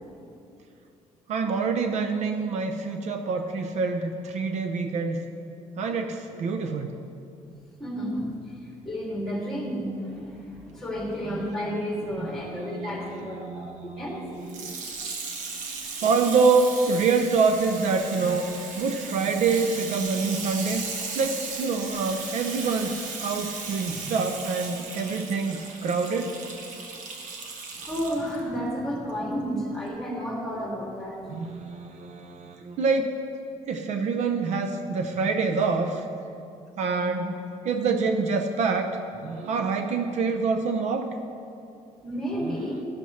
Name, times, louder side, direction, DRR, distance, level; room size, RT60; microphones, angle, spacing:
voice 1, 1.3-5.2 5.8-7.0 10.7-10.8 11.3-11.4 12.3-14.7 16.0-20.8 21.1-26.3 31.3-33.1 33.7-36.1 36.8-37.4 37.6-38.9 39.2-41.1 42.4-42.6, right 4 dB, 60° right, 6 dB, 0.6 m, -26 dB
voice 2, 7.8-14.2 27.7-31.2 42.0-42.8, equal, 5° left, -3 dB, 2.5 m, -32 dB
Water tap faucet / Sink (filling or washing), 14.4-28.4 29.1-29.2, right 4 dB, 80° right, 1.3 m, -36 dB
12.5 x 11.5 x 3.2 m, 2.6 s
cardioid pair, 145°, 13 cm